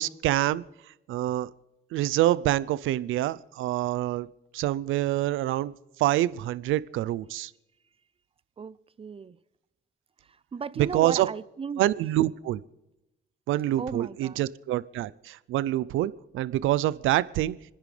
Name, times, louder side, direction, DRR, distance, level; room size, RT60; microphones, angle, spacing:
voice 1, 0.0-1.5 1.9-4.3 4.5-5.7 6.0-7.5 10.8-11.3 11.8-12.6 13.5-17.6, right 14 dB, 85° right, 0.5 m, -26 dB
voice 2, 8.6-9.4 10.5-11.9 13.8-14.4, right 6 dB, 30° right, 0.5 m, -36 dB
29.5 x 10.5 x 3.3 m
cardioid pair, 90°, 20 cm